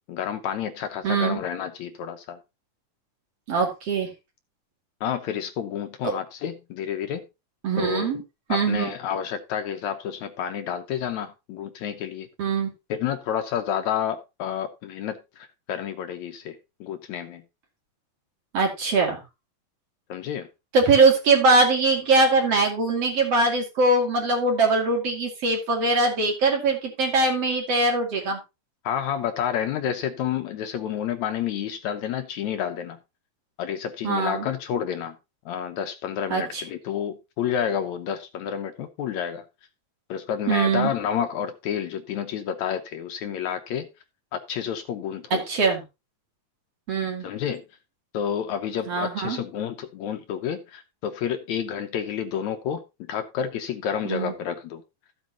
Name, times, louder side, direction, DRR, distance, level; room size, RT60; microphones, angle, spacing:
voice 1, 0.1-2.4 5.0-7.3 7.8-8.1 8.5-12.3 12.9-17.4 20.1-20.5 28.8-33.0 33.6-35.2 35.5-39.5 40.1-43.9 44.3-45.4 47.2-47.6 48.1-54.8, left 9 dB, 70° left, 2.0 m, -30 dB
voice 2, 1.0-1.4 3.5-4.1 6.0-6.1 7.6-8.2 8.5-8.9 12.4-12.7 18.5-19.2 20.7-28.4 34.0-34.5 36.3-36.6 40.5-40.9 45.3-45.8 46.9-47.3 48.9-49.4 54.1-54.3, right 3 dB, 50° right, 3.3 m, -22 dB
14.0 x 7.9 x 2.9 m
omnidirectional pair, 3.7 m